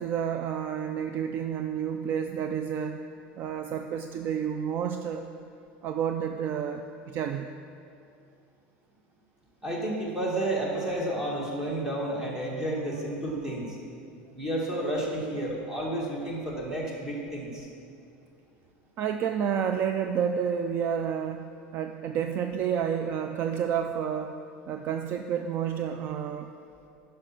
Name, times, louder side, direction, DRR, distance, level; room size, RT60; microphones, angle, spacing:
voice 1, 0.0-3.0 3.4-5.2 5.8-7.5 19.0-24.4 24.7-26.5, right 8 dB, 45° right, 6 dB, 0.4 m, -30 dB
voice 2, 9.6-13.8 14.3-17.7, right 1 dB, 10° right, -3 dB, 2.0 m, -31 dB
9.8 x 5.7 x 5.8 m, 2.5 s
supercardioid pair, 125°, 5 cm